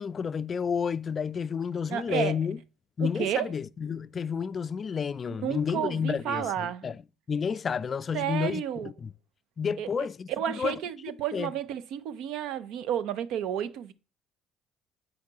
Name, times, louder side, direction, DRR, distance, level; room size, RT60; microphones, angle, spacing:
voice 1, 0.0-2.6 3.0-7.0 7.3-9.1 9.6-10.8 11.3-11.5, left 6 dB, 40° left, 0.3 m, -31 dB
voice 2, 1.9-2.4 3.0-3.5 5.3-6.9 8.1-8.9 9.8-9.9 10.4-13.9, right 10 dB, 70° right, 0.5 m, -31 dB
7.6 x 5.8 x 2.8 m
hypercardioid pair, 65°, 0 cm